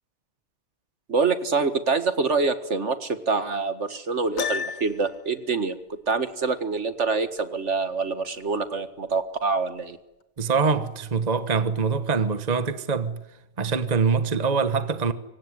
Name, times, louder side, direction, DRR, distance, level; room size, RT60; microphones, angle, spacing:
voice 1, 1.1-5.8 6.1-10.0, right 4 dB, 55° right, 2.1 m, -25 dB
Piano, 4.4-5.2, left 7 dB, 70° left, 2.0 m, -30 dB
voice 2, 10.4-13.2 13.6-15.1, right 5 dB, 30° right, 1.3 m, -24 dB
25.5 x 24.0 x 9.8 m
omnidirectional pair, 1.4 m